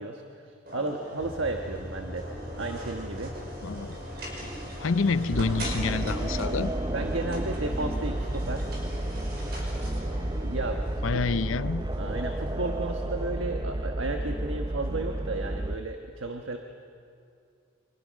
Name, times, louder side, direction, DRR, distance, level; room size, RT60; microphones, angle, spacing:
voice 1, 0.0-2.3 2.6-3.4 6.9-8.7 10.4-11.3 12.0-16.6, right 2 dB, 75° right, 4 dB, 1.3 m, -33 dB
sound 1, 0.7-13.3, equal, 50° right, 5.8 m, -41 dB
sound 2, 1.2-12.5, equal, 5° right, 2.5 m, -42 dB
voice 2, 3.6-3.9 4.3-4.4 4.8-6.7 11.0-11.9, left 4 dB, 85° left, 16 dB, 0.6 m, -28 dB
sound 3, 5.3-15.8, right 1 dB, 20° right, 0.5 m, -32 dB
29.0 x 25.5 x 6.4 m, 2.5 s
head